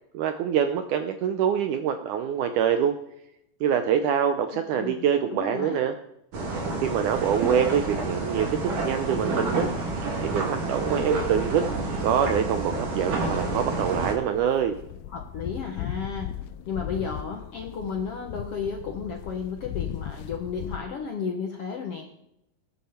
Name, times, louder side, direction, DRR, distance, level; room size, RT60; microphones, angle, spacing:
voice 1, 0.1-3.0 3.6-5.9 6.8-9.7 10.2-11.6 12.0-14.8, right 8 dB, 80° right, 7 dB, 1.8 m, -25 dB
voice 2, 4.5-5.8 15.1-22.2, left 6 dB, 70° left, 3 dB, 1.4 m, -33 dB
sound 1, 6.3-14.1, right 2 dB, 65° right, 4.0 m, -29 dB
sound 2, 13.3-20.8, left 11 dB, 85° left, 2.5 m, -37 dB
19.5 x 11.0 x 4.3 m, 0.82 s
omnidirectional pair, 4.2 m